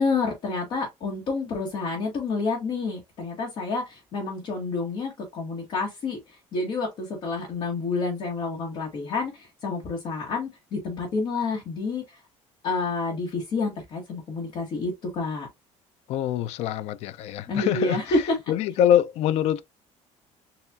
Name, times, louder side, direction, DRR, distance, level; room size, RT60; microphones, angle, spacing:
voice 1, 0.0-12.2 12.6-15.5 17.5-18.4, left 3 dB, 40° left, 1.1 m, -29 dB
voice 2, 16.1-19.6, left 10 dB, 60° left, 0.4 m, -24 dB
6.9 x 2.3 x 2.3 m
cardioid pair, 175°, 13 cm